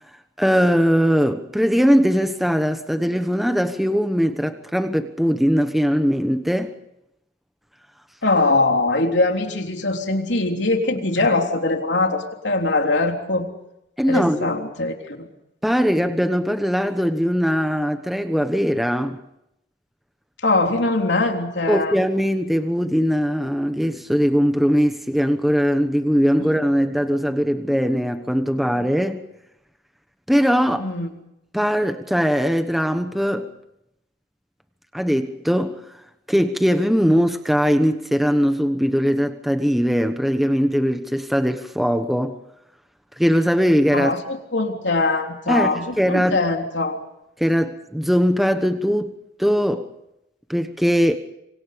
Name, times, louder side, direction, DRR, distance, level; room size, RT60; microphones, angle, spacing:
voice 1, 0.4-6.7 11.0-11.3 14.0-14.5 15.6-19.2 21.7-29.2 30.3-30.9 31.5-33.5 34.9-35.8 36.3-42.4 43.2-44.1 45.5-45.7 46.0-46.4 47.4-49.1 49.4-49.9 50.5-51.2, equal, ahead, 1.1 m, -20 dB
voice 2, 8.2-13.5 14.1-15.2 20.4-22.0 26.4-26.5 30.8-31.1 43.9-47.0, left 2 dB, 85° left, 3.5 m, -22 dB
27.0 x 25.5 x 5.2 m
head